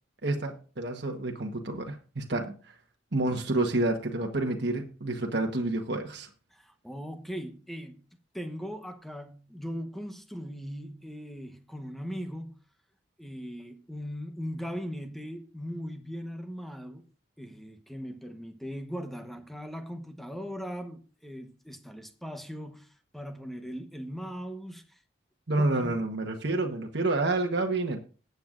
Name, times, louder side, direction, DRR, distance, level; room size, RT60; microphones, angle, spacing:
voice 1, 0.2-2.7 3.1-6.3 25.5-28.0, right 2 dB, 60° right, 1.3 m, -29 dB
voice 2, 6.5-8.0 8.3-12.6 13.2-17.0 17.4-25.0 25.6-26.0, equal, ahead, 1.0 m, -39 dB
19.0 x 7.9 x 2.5 m
head